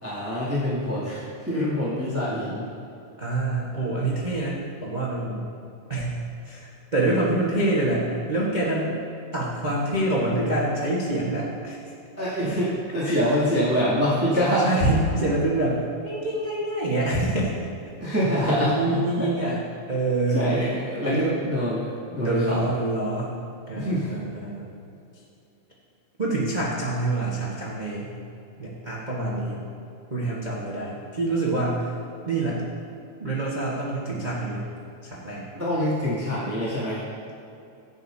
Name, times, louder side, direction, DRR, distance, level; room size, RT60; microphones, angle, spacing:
voice 1, 0.0-2.7 12.2-14.7 18.0-19.3 20.3-22.7 23.7-24.1 35.5-37.0, equal, 5° right, -10 dB, 1.9 m, -25 dB
voice 2, 3.2-5.4 5.9-6.2 6.4-9.0 9.3-11.9 12.4-12.6 13.0-13.2 14.6-17.5 18.0-18.1 18.4-19.6 19.9-20.5 21.0-21.4 22.2-23.3 23.7-24.7 26.2-28.1 28.6-29.6 30.1-31.9 32.2-32.6 33.2-34.6 35.0-35.4, right 2 dB, 70° right, -6 dB, 0.4 m, -26 dB
15.5 x 10.5 x 2.8 m, 2.7 s
omnidirectional pair, 3.6 m